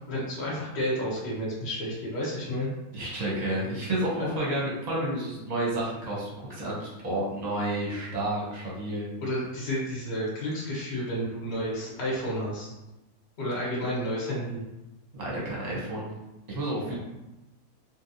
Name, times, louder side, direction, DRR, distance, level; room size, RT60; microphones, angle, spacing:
voice 1, 0.1-2.7 4.2-4.3 9.2-12.7 13.4-14.6, equal, 40° left, -6 dB, 1.3 m, -31 dB
voice 2, 2.9-9.1 15.1-16.1 16.5-17.0, right 1 dB, 30° right, -5 dB, 0.9 m, -30 dB
3.5 x 2.5 x 2.7 m, 0.99 s
omnidirectional pair, 1.8 m